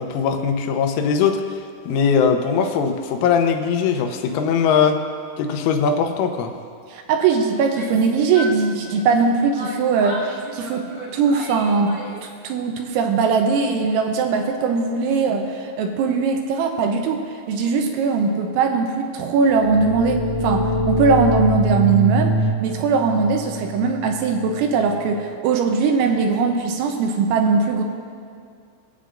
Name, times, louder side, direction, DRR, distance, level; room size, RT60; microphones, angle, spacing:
voice 1, 0.0-1.4 1.9-5.0 5.4-6.5, left 6 dB, 85° left, 5 dB, 3.3 m, -20 dB
voice 2, 6.9-12.0 12.4-17.2 17.5-22.4 22.6-27.8, right 5 dB, 80° right, 4 dB, 3.0 m, -20 dB
Yell, 7.6-9.2 9.5-12.4, equal, 55° right, 1.5 m, -35 dB
sound 1, 19.5-25.1, equal, 55° left, 1.8 m, -24 dB
23.5 x 8.1 x 2.5 m, 2.2 s
omnidirectional pair, 5.6 m